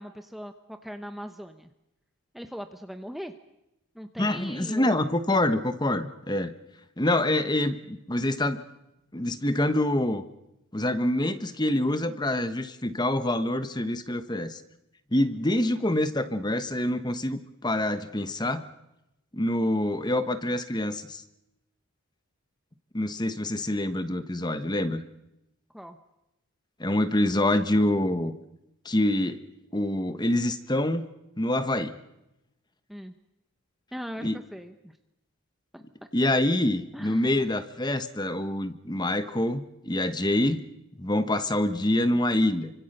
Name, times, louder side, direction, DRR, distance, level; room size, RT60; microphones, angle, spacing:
voice 1, 0.0-1.7 2.3-3.3 3.9-5.1 25.7-26.0 32.9-33.1 33.9-34.9 35.7-35.8 36.9-37.5, equal, ahead, 6 dB, 0.9 m, -40 dB
voice 2, 4.2-6.5 7.0-8.6 9.1-10.2 10.7-14.6 15.1-18.6 19.3-21.2 22.9-25.0 26.8-28.3 28.8-29.4 29.7-31.1 31.4-31.9 34.2-34.4 36.1-40.6 41.0-42.7, left 1 dB, 20° left, 10 dB, 1.1 m, -26 dB
28.5 x 25.0 x 6.6 m, 0.90 s
head